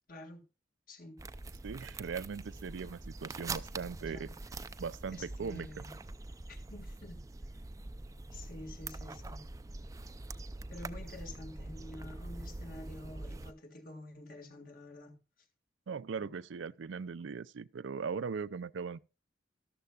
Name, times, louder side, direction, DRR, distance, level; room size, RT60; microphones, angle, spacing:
voice 1, 0.1-0.4 0.9-1.2 4.0-4.3 5.1-5.9 6.5-7.2 8.3-9.4 10.7-15.2 16.2-16.3, left 1 dB, 50° left, 1.7 m, -49 dB
sound 1, 1.2-13.5, right 2 dB, 20° right, 0.4 m, -44 dB
voice 2, 1.6-4.3 4.8-5.8 15.9-19.0, right 5 dB, 90° right, 0.4 m, -39 dB
13.5 x 12.5 x 2.3 m
head